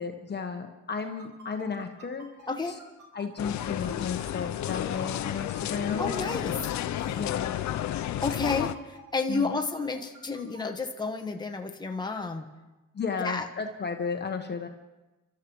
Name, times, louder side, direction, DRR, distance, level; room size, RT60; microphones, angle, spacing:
voice 1, 0.0-2.3 3.1-6.1 7.1-7.6 9.3-9.6 12.9-14.7, left 5 dB, 35° left, 4 dB, 1.2 m, -34 dB
sound 1, 1.0-10.6, right 2 dB, 70° right, 4.1 m, -49 dB
voice 2, 2.5-2.8 6.0-6.6 8.2-12.4 13.2-13.5, left 4 dB, 15° left, 4 dB, 1.3 m, -31 dB
sound 2, 3.4-8.7, left 12 dB, 65° left, 0.6 m, -31 dB
30.0 x 13.0 x 3.1 m, 1.1 s
cardioid pair, 90°, 30 cm